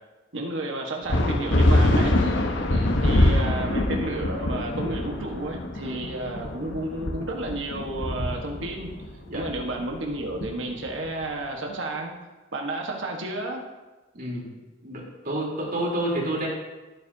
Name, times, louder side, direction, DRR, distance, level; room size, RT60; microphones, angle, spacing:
voice 1, 0.3-2.2 3.0-8.9 9.3-12.1 12.5-13.6, right 2 dB, 75° right, 1 dB, 1.5 m, -32 dB
sound 1, 1.1-11.1, left 1 dB, 65° left, 1.2 m, -24 dB
voice 2, 2.7-3.0 9.3-9.4 14.1-14.5 14.8-16.5, right 1 dB, 50° right, -4 dB, 3.7 m, -29 dB
16.0 x 9.3 x 2.8 m, 1.1 s
head